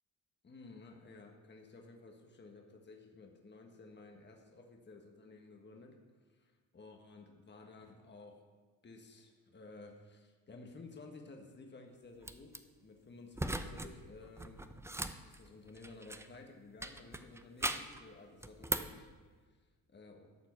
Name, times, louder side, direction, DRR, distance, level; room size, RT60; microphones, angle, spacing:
voice 1, 0.4-6.0 6.3-8.4 8.8-14.7 15.2-19.1 19.4-19.6 19.9-20.3, left 3 dB, 30° left, 2 dB, 1.4 m, -54 dB
sound 1, 12.2-12.6 13.3-13.9 14.2-16.4 16.8-18.0 18.4-19.0, right 2 dB, 10° right, 0.6 m, -39 dB
12.5 x 4.4 x 7.1 m, 1.4 s
supercardioid pair, 70°, 36 cm